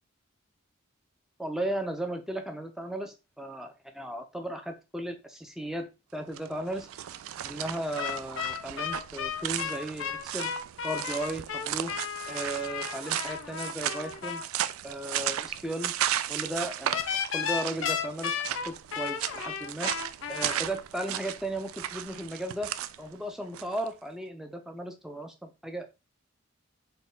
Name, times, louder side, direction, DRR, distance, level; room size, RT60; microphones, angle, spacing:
voice 1, 1.4-6.9 7.4-10.5 10.8-11.9 12.3-14.4 14.8-15.9 16.3-17.0 17.3-20.0 20.3-22.7 23.0-25.9, right 1 dB, ahead, 5 dB, 0.5 m, -36 dB
sound 1, 6.2-23.9, right 11 dB, 85° right, 0.3 m, -35 dB
sound 2, 8.0-14.4 16.9-20.6, left 7 dB, 65° left, 0.5 m, -34 dB
4.2 x 2.3 x 3.7 m, 0.26 s
head